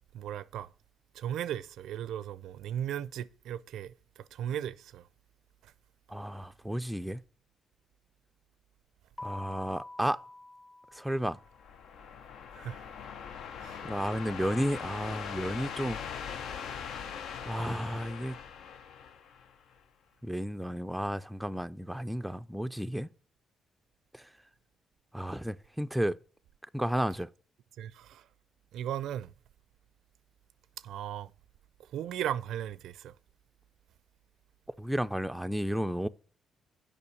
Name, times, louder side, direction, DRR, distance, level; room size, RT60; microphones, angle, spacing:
voice 1, 0.1-0.7 1.1-5.0 5.6-5.7 12.5-12.9 13.6-13.8 27.8-28.2 28.7-29.3 30.8-31.3 31.9-33.1, right 10 dB, 80° right, 0.4 m, -37 dB
voice 2, 6.1-7.2 9.2-10.2 10.9-11.4 13.8-16.0 17.4-18.4 20.2-23.1 24.1-24.2 25.1-26.2 26.7-27.3 34.8-36.1, equal, 5° right, 0.4 m, -32 dB
Keyboard (musical), 9.2-11.7, left 2 dB, 30° left, 1.1 m, -46 dB
sound 1, 11.3-19.8, left 7 dB, 75° left, 0.6 m, -41 dB
6.8 x 5.3 x 7.0 m
cardioid pair, 90°, 0 cm